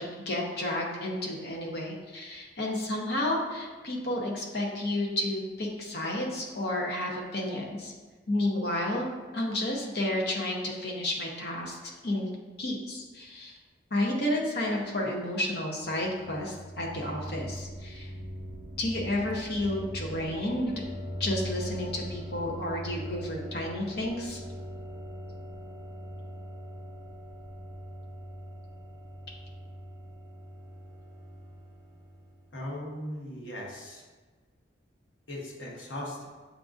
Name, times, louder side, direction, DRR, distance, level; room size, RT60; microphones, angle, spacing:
voice 1, 0.0-7.9 8.3-9.1 9.3-12.3 12.6-13.6 13.9-18.1 18.8-20.8 21.2-24.4, left 1 dB, 55° left, -1 dB, 0.7 m, -31 dB
sound 1, 15.7-32.5, equal, 20° right, 0.7 m, -41 dB
voice 2, 32.5-34.0 35.3-36.2, left 1 dB, 75° left, -3 dB, 1.0 m, -38 dB
7.3 x 2.5 x 2.4 m, 1.3 s
head